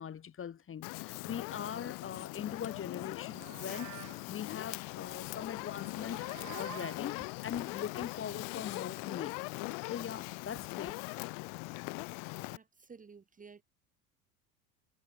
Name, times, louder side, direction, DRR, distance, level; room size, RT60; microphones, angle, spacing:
voice 1, 0.0-6.3 6.6-9.3 9.9-11.0, left 8 dB, 25° left, 2.9 m, -41 dB
Fire, 0.8-12.6, left 37 dB, 45° left, 0.9 m, -41 dB
Livestock farm animals working animals, 3.2-4.3 5.6-7.1, right 14 dB, 35° right, 1.7 m, -49 dB
voice 2, 12.5-13.6, right 5 dB, 15° right, 2.1 m, -53 dB
figure-of-eight pair, 70°, 46 cm